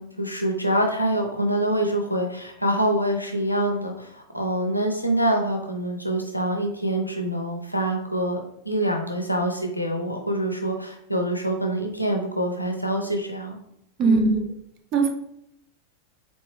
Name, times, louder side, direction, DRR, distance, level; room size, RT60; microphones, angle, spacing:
voice 1, 0.0-13.6 14.0-14.5, right 1 dB, 85° left, 3 dB, 0.6 m, -25 dB
voice 2, 14.0-14.4 14.9-15.1, right 4 dB, 35° right, 5 dB, 0.6 m, -19 dB
4.4 x 2.7 x 3.2 m, 0.76 s
figure-of-eight pair, 90°, 0 cm